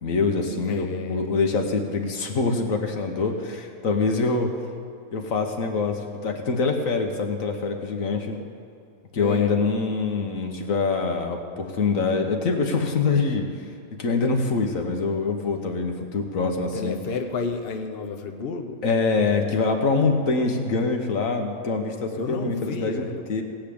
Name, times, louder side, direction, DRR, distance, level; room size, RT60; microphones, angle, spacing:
voice 1, 0.0-4.5 5.1-8.4 9.1-13.5 14.0-17.0 18.8-23.4, left 4 dB, 75° left, 4 dB, 1.6 m, -24 dB
voice 2, 0.7-1.3 9.2-9.5 16.7-18.8 22.1-23.2, left 4 dB, 50° left, 5 dB, 1.0 m, -31 dB
17.0 x 5.7 x 8.6 m, 2.5 s
omnidirectional pair, 1.4 m